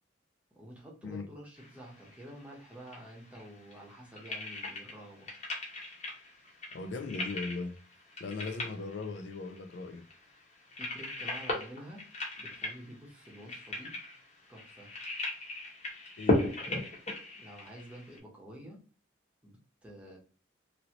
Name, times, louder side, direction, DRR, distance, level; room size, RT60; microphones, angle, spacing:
voice 1, 0.5-5.3 10.7-12.0 12.4-14.0 14.5-14.9 17.4-18.8 19.4-20.2, equal, 5° right, 0.9 m, -49 dB
sound 1, 1.6-18.2, left 2 dB, 35° left, 1.0 m, -37 dB
voice 2, 6.7-7.8 8.2-10.1 16.2-16.5, left 3 dB, 60° left, 0.4 m, -38 dB
3.1 x 2.6 x 2.8 m
head